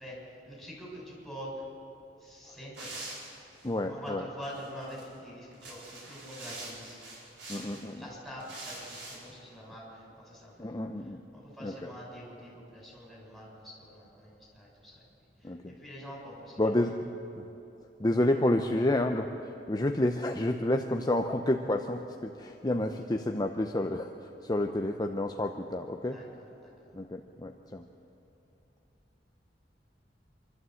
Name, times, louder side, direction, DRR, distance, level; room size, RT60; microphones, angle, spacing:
voice 1, 0.0-1.7 2.2-3.1 3.9-7.0 7.4-10.9 11.3-15.0 15.4-16.6 26.1-26.9, equal, ahead, -5 dB, 6.5 m, -45 dB
sound 1, 2.7-3.7 4.5-5.0 5.5-7.9 8.4-9.2, right 2 dB, 85° right, 4.7 m, -44 dB
voice 2, 3.6-4.2 7.5-8.0 10.6-11.2 11.6-11.7 15.4-15.7 16.6-17.1 17.4-17.5 18.0-19.3 19.7-26.2 26.9-27.8, left 1 dB, 25° left, 4 dB, 0.7 m, -29 dB
26.5 x 12.5 x 7.9 m, 3.0 s
head